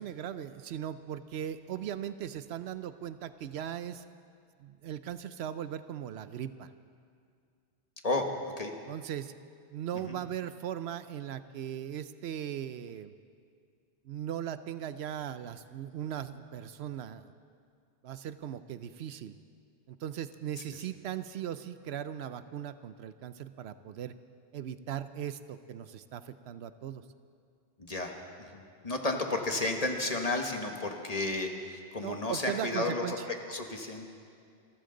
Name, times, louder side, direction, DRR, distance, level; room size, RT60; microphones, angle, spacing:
voice 1, 0.0-4.0 4.6-6.7 8.9-9.3 9.7-13.1 14.0-17.3 18.0-19.3 19.9-24.1 24.5-27.0 32.0-33.3, right 10 dB, 75° right, 13 dB, 0.8 m, -38 dB
voice 2, 8.0-8.7 9.9-10.2 20.7-20.8 27.8-33.2 33.5-34.1, left 2 dB, 35° left, 3 dB, 1.4 m, -33 dB
26.5 x 13.5 x 3.9 m, 2.3 s
omnidirectional pair, 1.1 m